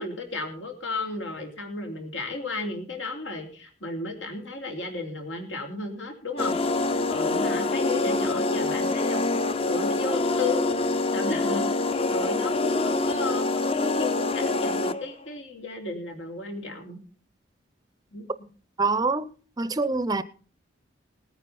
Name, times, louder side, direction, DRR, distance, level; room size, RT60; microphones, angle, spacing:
voice 1, 0.0-6.5 7.1-9.3 9.7-10.9 11.1-11.7 12.1-17.0 18.1-18.3, left 3 dB, 85° left, 3.4 m, -33 dB
sound 1, 6.4-15.1, left 2 dB, 30° left, 0.6 m, -25 dB
voice 2, 18.8-19.3 19.6-20.2, right 3 dB, 20° right, 0.5 m, -25 dB
19.0 x 9.3 x 4.1 m
head